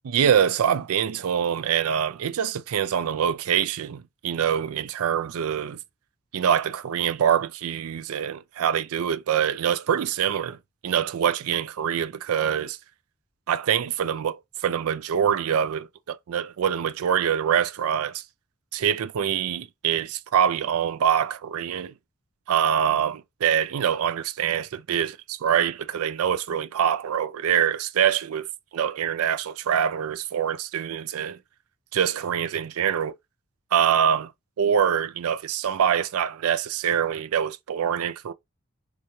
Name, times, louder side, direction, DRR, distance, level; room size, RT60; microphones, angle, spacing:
voice 1, 0.0-5.8 6.3-10.6 10.8-12.8 13.5-18.2 18.7-21.9 22.5-25.1 25.4-28.5 28.7-31.4 31.9-33.2 33.7-34.3 34.6-38.3, right 8 dB, 80° right, 0.4 m, -24 dB
3.3 x 3.0 x 2.7 m
head